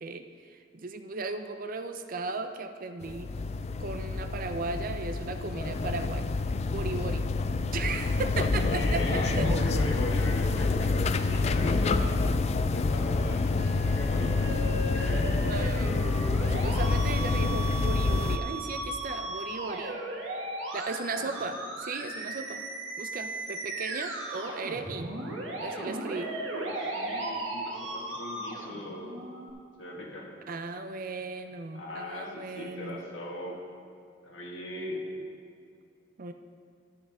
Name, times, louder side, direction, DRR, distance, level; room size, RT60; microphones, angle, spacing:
voice 1, 0.0-3.3 3.8-6.3 6.7-7.3 7.7-9.6 15.5-16.0 16.5-20.0 20.7-22.6 23.0-25.1 25.6-26.3 30.5-33.0 36.2-36.3, right 3 dB, 45° right, 8 dB, 0.5 m, -36 dB
sound 1, 3.0-18.4, left 3 dB, 35° left, 0.4 m, -27 dB
voice 2, 8.7-12.4 12.6-15.4 15.9-16.2 21.1-21.4 26.5-29.1 29.8-30.4 31.7-33.6 34.2-35.1, left 1 dB, 80° left, -2 dB, 1.9 m, -39 dB
Musical instrument, 13.6-29.5, right 2 dB, 85° right, 1.7 m, -36 dB
12.5 x 9.7 x 3.6 m, 2.4 s
head